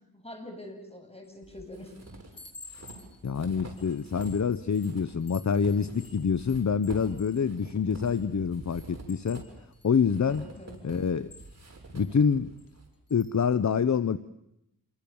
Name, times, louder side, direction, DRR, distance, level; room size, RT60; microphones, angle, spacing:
voice 1, 0.1-1.9 10.3-10.8, left 1 dB, 15° left, 4 dB, 7.7 m, -44 dB
Chime, 1.2-1.6 2.0-8.3 8.7-12.1 12.6-12.8 13.1-13.4, left 3 dB, 65° left, 3.2 m, -53 dB
sound 1, 1.4-4.4 4.7-12.9, right 2 dB, 45° right, 6.9 m, -47 dB
voice 2, 3.2-9.4 9.8-10.5 10.8-11.3 11.9-12.5 13.1-14.2, left 6 dB, 50° left, 15 dB, 0.9 m, -26 dB
27.5 x 24.0 x 7.1 m, 0.84 s
cardioid pair, 55°, 37 cm